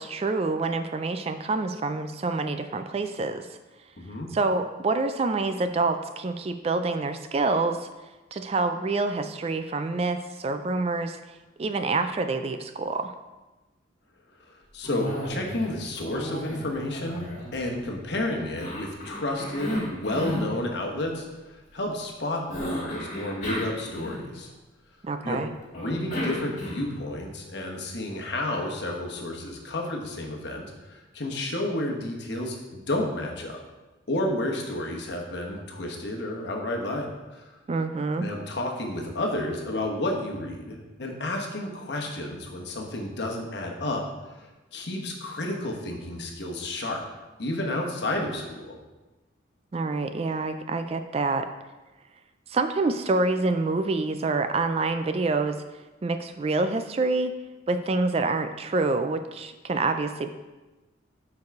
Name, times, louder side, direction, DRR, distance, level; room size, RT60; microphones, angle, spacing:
voice 1, 0.0-3.5 4.3-7.9 8.3-11.2 11.6-13.2 25.0-25.5 37.7-38.3 49.7-51.5 52.5-55.6 56.0-57.4 57.7-60.3, right 3 dB, 30° right, 9 dB, 0.3 m, -27 dB
voice 2, 4.0-4.3 14.5-17.3 17.5-24.5 25.2-25.4 25.7-33.6 34.1-37.5 38.2-44.0 44.4-47.0 47.4-48.8, left 1 dB, 60° left, 1 dB, 1.1 m, -31 dB
Cough, 14.8-15.7 16.0-18.0 18.6-20.5 22.5-24.5 25.7-27.0, equal, 40° left, 2.2 m, -34 dB
7.0 x 4.8 x 4.6 m, 1.1 s
head